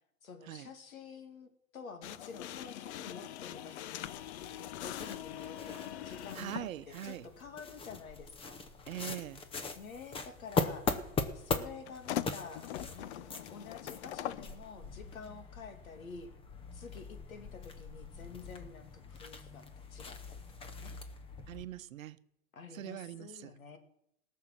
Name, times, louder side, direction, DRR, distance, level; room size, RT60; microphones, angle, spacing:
voice 1, 0.2-4.0 4.6-8.6 9.7-16.3 16.7-21.0 22.5-23.8, left 5 dB, 85° left, 2.5 m, -49 dB
sound 1, 2.0-6.7 7.8-8.0 11.9-14.5, left 12 dB, 55° left, 0.7 m, -42 dB
sound 2, 4.0-21.7, left 4 dB, 15° left, 0.8 m, -41 dB
voice 2, 6.3-7.3 8.9-9.4 21.5-22.2 22.7-23.5, right 12 dB, 75° right, 0.9 m, -42 dB
17.5 x 6.5 x 7.4 m
hypercardioid pair, 135°, 41 cm